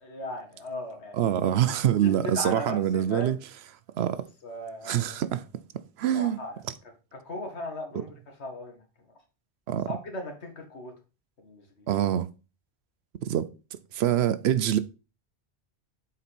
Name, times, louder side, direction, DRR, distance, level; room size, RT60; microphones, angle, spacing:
voice 1, 0.0-1.3 2.0-3.3 4.4-5.2 6.1-6.6 7.1-8.8 9.9-10.9 11.4-11.9, left 1 dB, 85° left, 1.9 m, -38 dB
voice 2, 1.1-3.4 4.0-4.2 4.9-5.4 6.0-6.4 7.9-8.0 9.7-9.9 11.9-12.3 13.2-13.5 13.9-14.8, right 10 dB, 75° right, 0.9 m, -25 dB
7.4 x 4.2 x 4.2 m
omnidirectional pair, 1.1 m